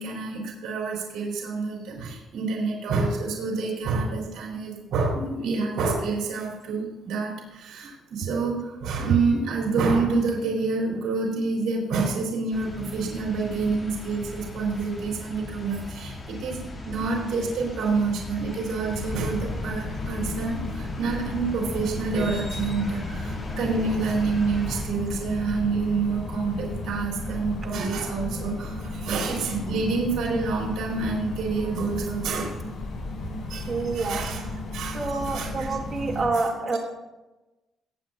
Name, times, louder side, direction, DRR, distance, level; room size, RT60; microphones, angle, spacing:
voice 1, 0.0-16.6 16.8-32.6 33.5-35.8 36.1-36.8, right 4 dB, 70° right, -3 dB, 3.8 m, -28 dB
sound 1, 12.5-24.8, left 2 dB, 30° left, 2.6 m, -38 dB
sound 2, 18.9-36.2, left 2 dB, 65° left, 3.8 m, -34 dB
voice 2, 33.7-34.2 34.9-36.8, right 3 dB, 35° right, 0 dB, 2.5 m, -27 dB
21.0 x 8.9 x 2.6 m, 1.1 s
cardioid pair, 110°, 0 cm